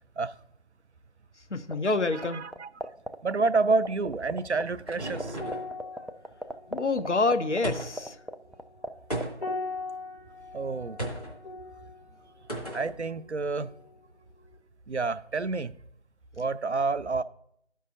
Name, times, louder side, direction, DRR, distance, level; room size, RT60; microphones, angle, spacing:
voice 1, 1.5-2.5 6.7-8.2, left 3 dB, 75° left, 0.8 m, -27 dB
sound 1, 1.7-2.2 2.5-4.6 4.9-5.0 5.2-8.9 9.1-9.5, right 1 dB, ahead, 0.3 m, -33 dB
voice 2, 2.1-2.7 3.2-5.4 10.5-11.0 12.7-13.7 14.9-15.7 16.4-17.2, right 3 dB, 65° right, 0.5 m, -28 dB
sound 2, 4.2-5.8 7.6-8.1 9.1-9.6 11.0-11.4 12.5-12.9, right 1 dB, 30° left, 1.6 m, -35 dB
sound 3, 5.4-14.1 14.4-14.6, left 3 dB, 60° left, 2.3 m, -42 dB
13.5 x 5.5 x 2.5 m
figure-of-eight pair, 175°, 36 cm